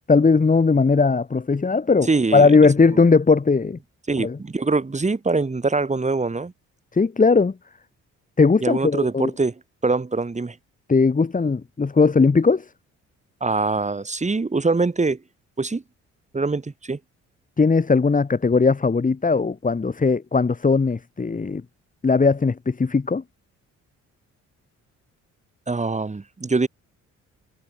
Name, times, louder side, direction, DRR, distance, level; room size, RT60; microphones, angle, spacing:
voice 1, 0.1-3.8 4.2-4.4 6.9-7.5 8.4-9.3 10.9-12.7 17.6-21.6 22.0-23.2, left 4 dB, 25° left, 2.9 m, -18 dB
voice 2, 2.1-2.5 2.9-3.1 4.1-6.5 8.6-9.5 9.8-10.6 13.4-15.2 15.6-15.8 16.3-17.0 25.7-26.7, right 3 dB, 25° right, 6.4 m, -23 dB
cardioid pair, 90°, 30 cm